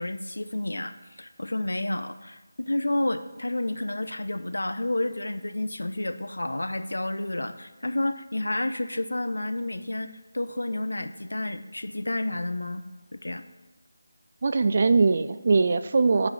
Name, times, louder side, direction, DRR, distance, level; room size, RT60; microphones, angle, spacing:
voice 1, 0.0-12.8 13.1-13.5, left 1 dB, 85° left, 10 dB, 0.5 m, -30 dB
voice 2, 14.4-16.3, right 4 dB, 45° right, 11 dB, 0.3 m, -21 dB
10.0 x 4.4 x 4.0 m, 1.2 s
figure-of-eight pair, 165°, 0 cm